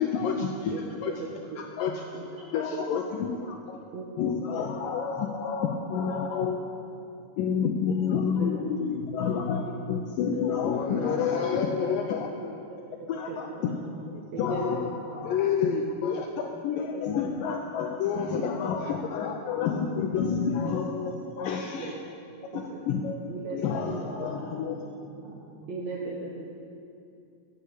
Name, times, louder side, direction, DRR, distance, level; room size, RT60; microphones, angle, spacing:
voice 1, 0.0-1.2 1.6-2.1 2.5-3.8 4.2-6.6 7.4-12.5 13.1-13.7 14.4-22.0 22.5-23.2 23.5-24.9, left 6 dB, 90° left, 3 dB, 1.9 m, -29 dB
voice 2, 1.2-1.6 2.1-2.2 2.7-3.0 3.9-4.0 4.6-4.7 8.4-8.5 13.3-13.4 14.3-14.8 21.8-21.9 22.5-22.8 23.3-24.0 25.7-26.5, right 4 dB, 60° right, -4 dB, 1.9 m, -36 dB
voice 3, 4.8-5.5 10.7-11.9 13.6-15.4 17.8-17.9 23.4-25.6, equal, 30° right, -5 dB, 2.9 m, -43 dB
12.5 x 8.6 x 8.2 m, 2.6 s
omnidirectional pair, 4.8 m